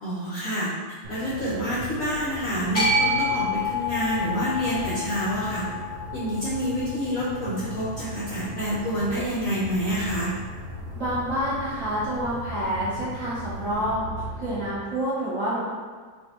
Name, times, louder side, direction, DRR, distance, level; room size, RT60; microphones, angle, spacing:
voice 1, 0.0-5.6 6.1-10.3, equal, 70° left, -8 dB, 0.8 m, -28 dB
sound 1, 1.0-14.8, equal, 80° right, 1.4 m, -38 dB
sound 2, 2.7-9.0, left 2 dB, 20° left, 0.9 m, -29 dB
voice 2, 10.9-14.0 14.4-15.6, equal, 60° right, -10 dB, 0.8 m, -28 dB
4.2 x 2.6 x 2.8 m, 1.5 s
omnidirectional pair, 2.2 m